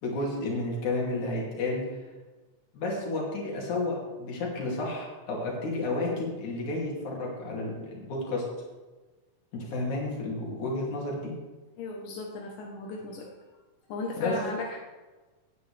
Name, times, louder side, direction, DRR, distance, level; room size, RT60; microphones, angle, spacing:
voice 1, 0.0-1.8 2.7-8.4 9.5-11.3 14.2-14.4, left 2 dB, 65° left, -2 dB, 3.9 m, -31 dB
voice 2, 11.8-13.3 13.9-14.8, left 3 dB, 90° left, -1 dB, 2.8 m, -36 dB
17.5 x 9.2 x 3.4 m, 1.2 s
omnidirectional pair, 3.6 m